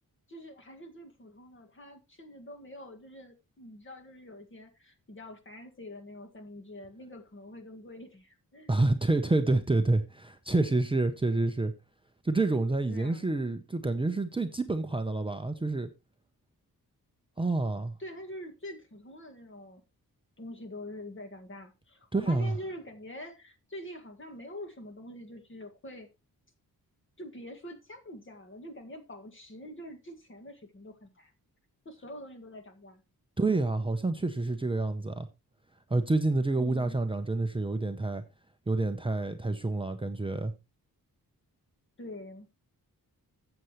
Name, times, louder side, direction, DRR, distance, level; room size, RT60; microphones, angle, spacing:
voice 1, 0.3-8.7 12.9-13.3 18.0-19.8 20.4-26.1 27.2-31.3 31.9-33.0 36.6-37.0 42.0-42.5, left 1 dB, 35° left, 2.0 m, -45 dB
voice 2, 8.7-11.7 12.2-15.9 17.4-17.9 22.1-22.5 33.4-35.3 35.9-38.2 38.7-40.5, right 2 dB, 15° right, 0.7 m, -28 dB
13.5 x 8.0 x 3.1 m
wide cardioid pair, 150°, 36 cm